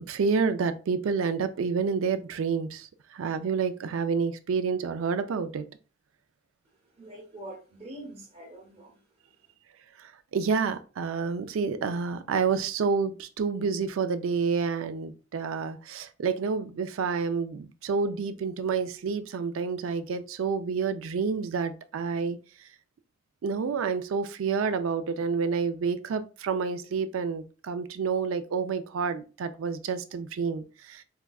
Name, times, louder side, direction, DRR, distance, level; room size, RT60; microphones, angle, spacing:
voice 1, 0.0-5.6 10.0-22.4 23.4-31.0, right 5 dB, 75° right, 0.4 m, -29 dB
voice 2, 6.8-9.5, right 1 dB, 30° right, 0.9 m, -45 dB
4.6 x 2.2 x 2.3 m
head